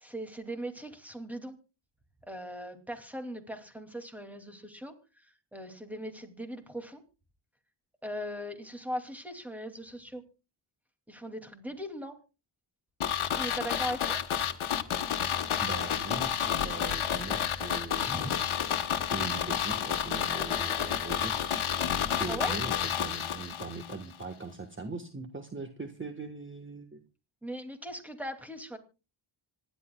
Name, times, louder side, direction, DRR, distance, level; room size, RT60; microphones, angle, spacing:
voice 1, 0.0-1.6 2.2-5.3 5.5-7.0 8.0-10.2 11.1-12.2 13.3-14.2 18.1-18.3 22.3-22.6 27.4-28.8, equal, 5° right, 5 dB, 2.5 m, -39 dB
sound 1, 13.0-24.0 24.2-24.3, left 9 dB, 75° left, 1.3 m, -30 dB
voice 2, 15.6-18.4 19.1-21.4 22.2-27.0, right 3 dB, 25° right, 6 dB, 1.3 m, -40 dB
26.5 x 11.0 x 2.3 m, 0.31 s
wide cardioid pair, 100°, 49 cm